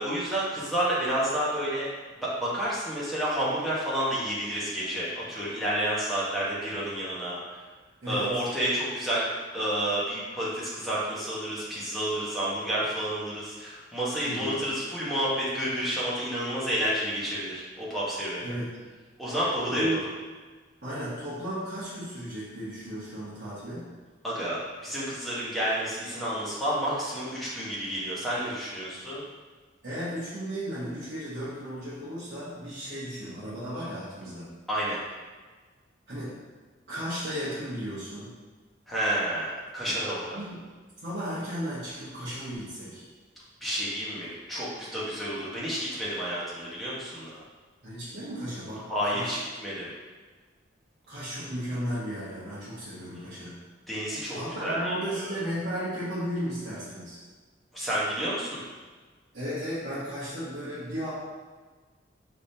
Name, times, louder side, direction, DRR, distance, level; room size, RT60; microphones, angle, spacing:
voice 1, 0.0-1.9 2.2-7.6 8.1-9.2 9.5-18.5 19.2-19.8 24.2-29.2 34.7-35.0 38.9-40.4 43.6-47.4 48.9-49.9 53.9-55.3 57.7-58.6, right 1 dB, ahead, -9 dB, 1.1 m, -30 dB
voice 2, 8.0-8.4 14.2-14.6 18.4-18.7 19.7-20.0 20.8-23.9 29.8-34.5 36.1-36.3 36.9-38.3 40.3-40.6 41.0-43.0 47.8-49.4 51.1-53.6 54.3-57.2 59.3-61.1, equal, 60° right, -13 dB, 1.3 m, -34 dB
5.0 x 3.4 x 2.8 m, 1.4 s
head